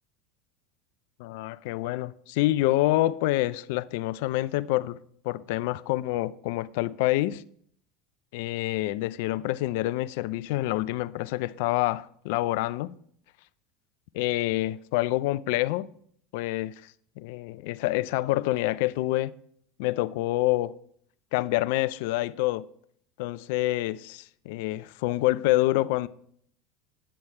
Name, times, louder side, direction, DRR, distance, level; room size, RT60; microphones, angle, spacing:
voice 1, 1.2-5.0 5.2-7.4 8.3-12.9 14.1-15.9 16.3-16.7 17.2-19.3 19.8-20.7 21.3-22.6 23.2-26.1, left 17 dB, 70° left, 0.4 m, -27 dB
9.8 x 7.7 x 4.3 m
hypercardioid pair, 90°, 0 cm